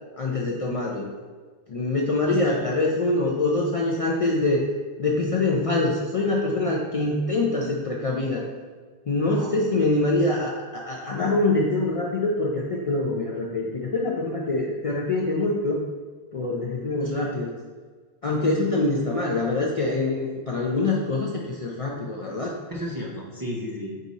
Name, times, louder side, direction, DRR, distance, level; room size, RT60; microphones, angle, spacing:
voice 1, 0.2-1.1 1.7-4.7 5.0-8.5 9.1-15.8 16.3-17.6 18.2-22.5, left 2 dB, 50° left, -3 dB, 0.4 m, -24 dB
voice 2, 2.3-2.7 9.2-9.6 18.6-18.8 22.7-24.0, equal, 30° right, -4 dB, 0.4 m, -34 dB
4.7 x 2.6 x 4.0 m, 1.5 s
omnidirectional pair, 1.0 m